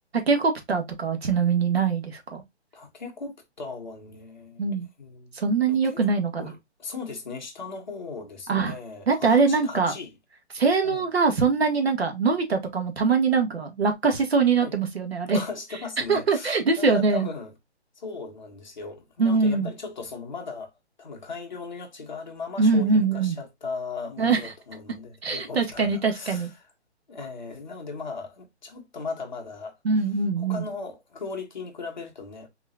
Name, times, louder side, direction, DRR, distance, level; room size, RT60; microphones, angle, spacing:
voice 1, 0.3-2.4 4.6-4.9 5.3-6.5 8.5-8.7 9.1-9.9 10.5-15.4 16.1-17.3 19.2-19.7 22.6-23.3 24.2-24.4 25.2-26.5 29.8-30.6, right 4 dB, 60° right, 1.5 m, -23 dB
voice 2, 2.7-4.7 5.0-5.3 5.7-6.0 6.4-10.1 10.8-11.1 14.6-14.7 15.3-17.5 18.0-20.7 21.0-26.5 27.1-29.8 30.4-32.5, left 4 dB, 40° left, 1.3 m, -37 dB
4.2 x 3.6 x 2.3 m
hypercardioid pair, 180°, 34 cm